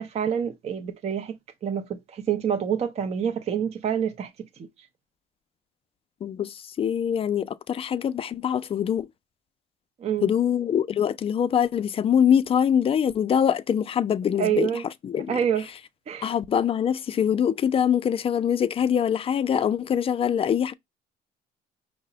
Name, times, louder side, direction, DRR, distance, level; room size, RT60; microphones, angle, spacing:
voice 1, 0.0-4.7 10.0-10.3 14.4-14.8 15.3-15.7 16.1-16.3, right 8 dB, 40° right, 0.5 m, -27 dB
voice 2, 6.2-9.1 10.2-14.7 15.0-15.4 16.2-20.7, left 8 dB, 35° left, 0.4 m, -24 dB
5.6 x 2.0 x 3.8 m
cardioid pair, 110°, 17 cm